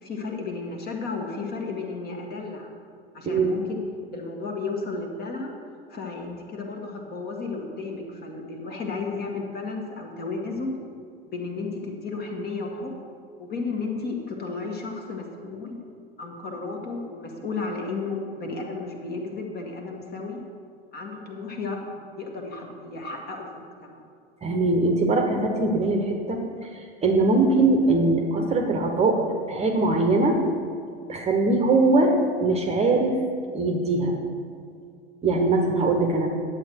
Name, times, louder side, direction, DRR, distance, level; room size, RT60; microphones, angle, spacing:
voice 1, 0.0-2.7 3.1-3.8 4.1-5.5 5.9-10.7 11.3-12.9 13.4-15.7 16.2-20.4 20.9-24.0, left 3 dB, 30° left, 1 dB, 1.7 m, -33 dB
voice 2, 24.4-26.4 27.0-29.2 29.5-30.4 31.1-32.1 32.4-33.2 33.5-34.1 35.2-36.3, right 3 dB, 20° right, 3 dB, 1.1 m, -21 dB
10.5 x 7.9 x 4.6 m, 2.2 s
figure-of-eight pair, 85°, 32 cm